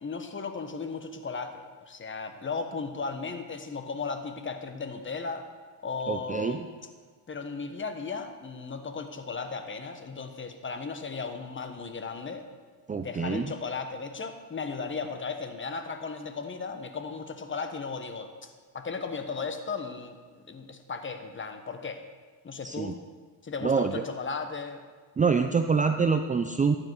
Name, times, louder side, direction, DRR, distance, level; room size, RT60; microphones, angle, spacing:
voice 1, 0.0-5.5 5.8-6.6 7.3-12.4 12.9-20.2 20.5-22.0 22.4-22.9 23.4-24.8, left 4 dB, 25° left, 7 dB, 1.2 m, -36 dB
voice 2, 6.1-6.7 12.9-13.5 22.6-22.9 23.6-24.0 25.2-26.8, right 5 dB, 20° right, 7 dB, 0.5 m, -26 dB
14.5 x 11.0 x 4.6 m, 1.5 s
cardioid pair, 105°, 45 cm